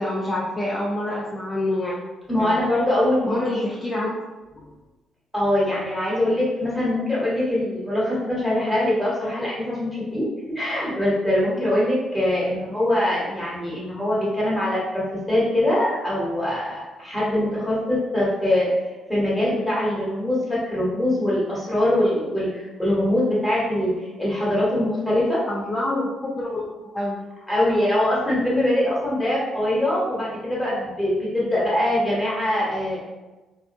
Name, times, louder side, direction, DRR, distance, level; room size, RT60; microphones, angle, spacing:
voice 1, 0.0-1.9 2.4-2.6 3.3-4.1 25.5-27.2, left 1 dB, 25° left, -5 dB, 0.4 m, -27 dB
voice 2, 2.3-3.6 5.3-25.4 27.5-33.0, left 1 dB, 5° left, -7 dB, 1.2 m, -23 dB
2.6 x 2.2 x 2.5 m, 1.1 s
cardioid pair, 90°, 0 cm